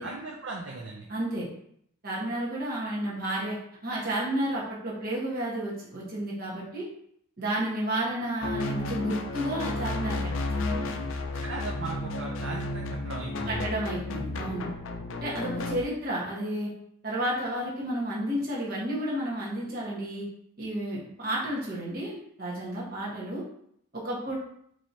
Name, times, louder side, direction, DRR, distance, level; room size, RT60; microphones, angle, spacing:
voice 1, 0.0-1.1 11.3-13.7, right 3 dB, 60° right, -1 dB, 0.5 m, -37 dB
voice 2, 1.1-1.5 2.0-3.6 3.8-6.9 7.4-11.1 13.5-14.7 15.2-16.7 17.0-20.2 20.6-23.5 23.9-24.4, right 1 dB, 45° right, -5 dB, 1.3 m, -31 dB
sound 1, 8.4-15.8, left 2 dB, 65° left, 0.4 m, -32 dB
4.5 x 3.1 x 2.8 m, 0.69 s
head